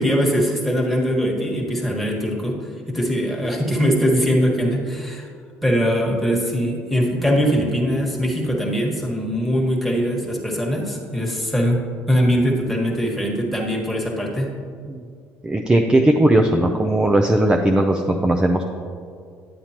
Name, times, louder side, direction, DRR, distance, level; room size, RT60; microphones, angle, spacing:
voice 1, 0.0-2.5 2.9-5.3 5.6-11.8 12.1-14.5, equal, ahead, -2 dB, 1.6 m, -21 dB
voice 2, 15.4-18.6, right 1 dB, 15° right, 3 dB, 0.5 m, -18 dB
9.5 x 8.7 x 2.9 m, 2.2 s
cardioid pair, 105°, 5 cm